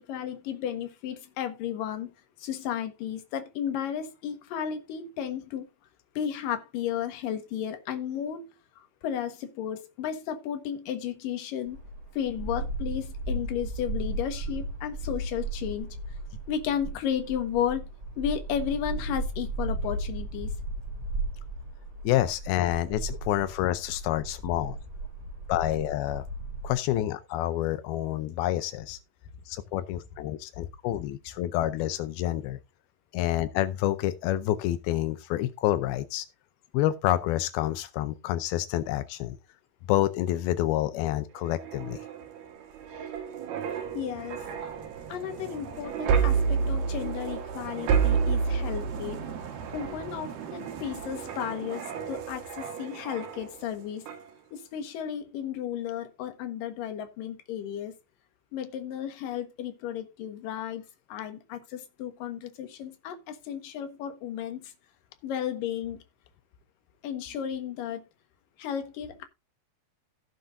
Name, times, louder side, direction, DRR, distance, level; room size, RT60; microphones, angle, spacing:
voice 1, 0.0-2.1 2.4-5.7 6.2-8.5 8.8-11.8 12.1-16.0 16.5-17.9 18.2-20.5 43.9-44.7 45.1-49.3 49.7-54.1 54.5-58.0 58.5-60.8 61.1-64.7 65.2-66.0 67.0-68.0 68.6-69.2, left 9 dB, 70° left, 3.0 m, -33 dB
sound 1, 11.7-26.7, right 2 dB, 25° right, 3.8 m, -35 dB
voice 2, 22.0-24.8 25.5-26.3 26.6-29.0 29.5-32.6 33.1-36.3 36.7-39.4 39.9-42.0, left 14 dB, 90° left, 2.6 m, -28 dB
sound 2, 41.4-53.7 54.1-54.3, right 6 dB, 85° right, 3.7 m, -30 dB
16.5 x 7.1 x 2.6 m
omnidirectional pair, 4.3 m